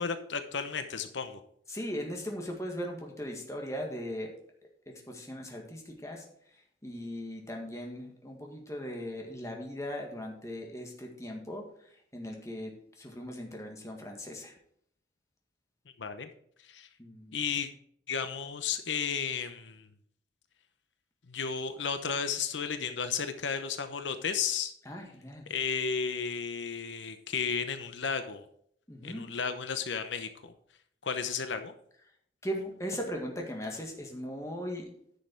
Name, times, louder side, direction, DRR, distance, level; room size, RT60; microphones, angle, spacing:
voice 1, 0.0-1.4 16.0-16.3 16.6-16.9 17.3-17.7 18.1-19.9 21.3-24.7 25.5-28.4 29.0-30.3 31.0-31.7, left 6 dB, 85° left, 9 dB, 0.8 m, -33 dB
voice 2, 1.7-4.3 4.9-6.3 6.8-14.5 17.0-17.4 24.9-25.5 28.9-29.3 32.4-34.9, equal, 15° left, 1 dB, 1.7 m, -39 dB
10.0 x 6.5 x 4.5 m, 0.66 s
head